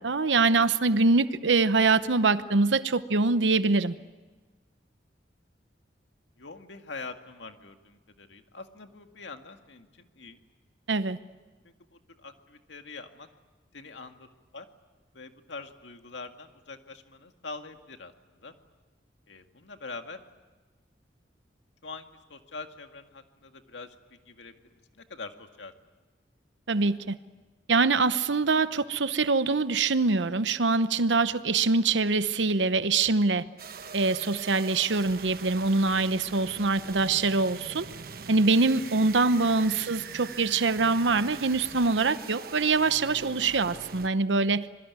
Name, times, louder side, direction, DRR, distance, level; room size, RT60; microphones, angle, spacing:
voice 1, 0.0-3.9 10.9-11.2 26.7-27.2 27.7-33.4 33.9-37.9 38.3-44.7, right 3 dB, 90° right, 13 dB, 0.9 m, -24 dB
voice 2, 6.4-10.4 11.6-13.3 13.7-14.3 14.5-14.7 15.1-18.5 19.3-20.2 21.8-22.0 22.3-25.7 39.9-40.2, left 3 dB, 90° left, 6 dB, 2.0 m, -44 dB
sound 1, 33.6-44.1, right 5 dB, 55° right, 1.1 m, -42 dB
26.5 x 22.0 x 9.6 m, 1.3 s
head